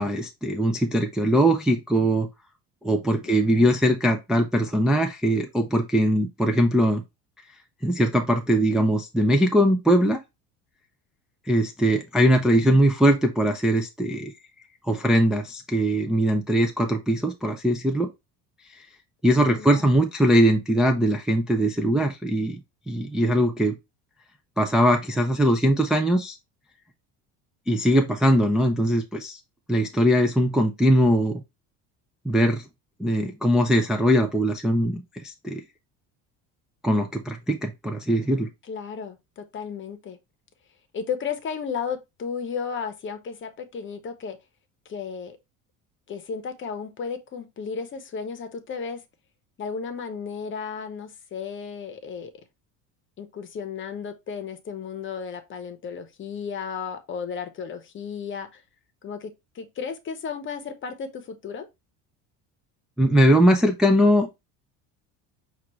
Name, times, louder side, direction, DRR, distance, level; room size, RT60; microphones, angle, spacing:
voice 1, 0.0-2.3 2.8-7.0 7.8-10.2 11.5-14.3 14.8-18.1 19.2-22.6 22.9-23.7 24.6-26.4 27.7-29.4 29.7-31.4 32.3-32.6 33.0-35.6 36.8-38.5 63.0-64.3, equal, ahead, 0.4 m, -21 dB
voice 2, 3.3-3.8 19.5-19.9 38.7-40.2 40.9-44.4 44.8-45.4 46.1-49.0 49.6-52.3 53.2-58.6 59.0-61.7, left 6 dB, 35° left, 0.8 m, -34 dB
5.8 x 2.5 x 3.0 m
cardioid pair, 120°, 35 cm